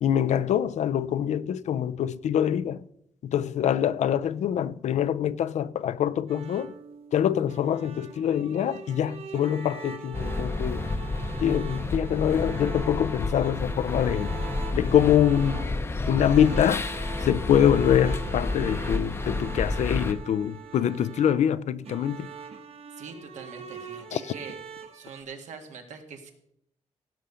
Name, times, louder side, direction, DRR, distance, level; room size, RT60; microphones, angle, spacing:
voice 1, 0.0-2.8 3.2-6.7 7.1-10.9 11.4-14.3 14.7-15.7 16.1-16.9 17.2-22.3 24.1-24.2, left 9 dB, 75° left, 0.5 m, -24 dB
sound 1, 6.3-25.2, right 6 dB, 55° right, 1.0 m, -43 dB
sound 2, 10.1-20.1, left 3 dB, 20° left, 0.7 m, -30 dB
voice 2, 23.0-24.6 24.9-26.3, right 5 dB, 90° right, 1.8 m, -43 dB
17.0 x 6.9 x 5.0 m
wide cardioid pair, 160°, 12 cm